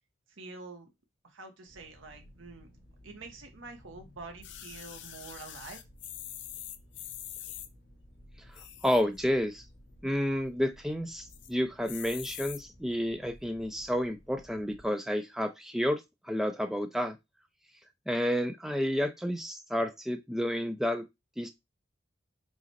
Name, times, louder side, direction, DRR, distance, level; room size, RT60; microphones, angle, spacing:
voice 1, 0.3-0.9 1.2-2.7 3.0-5.8, right 3 dB, 80° right, 0.8 m, -47 dB
sound 1, 1.7-14.9, equal, 50° left, 1.8 m, -56 dB
sound 2, 4.4-7.7 8.4-9.2 9.6-9.7 9.9-10.0 10.4-10.8 11.3-11.5 11.9-12.6 13.3-13.4, left 11 dB, 70° left, 0.5 m, -44 dB
voice 2, 8.8-9.6 10.0-17.2 18.1-21.0 21.4-21.5, equal, ahead, 0.4 m, -30 dB
4.8 x 2.1 x 4.1 m
head